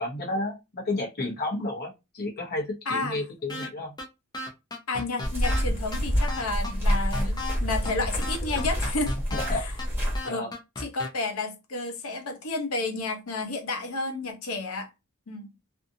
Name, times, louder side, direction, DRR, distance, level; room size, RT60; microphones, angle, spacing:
voice 1, 0.0-3.9 7.2-7.3 9.3-9.7 10.2-10.5, left 2 dB, 45° left, 0.9 m, -31 dB
voice 2, 2.9-3.2 4.9-9.1 9.5-9.7 10.2-10.5 10.8-14.9 15.3-15.5, left 3 dB, 75° left, 0.7 m, -31 dB
sound 1, 3.5-3.7 4.0-4.1 4.3-5.6 5.9-6.0 6.3-7.6 7.9-8.0 8.2-9.5 9.8-9.9 10.1-11.1, left 2 dB, 20° left, 0.6 m, -34 dB
sound 2, 5.2-10.2, equal, 10° right, 1.3 m, -27 dB
2.6 x 2.5 x 2.6 m
head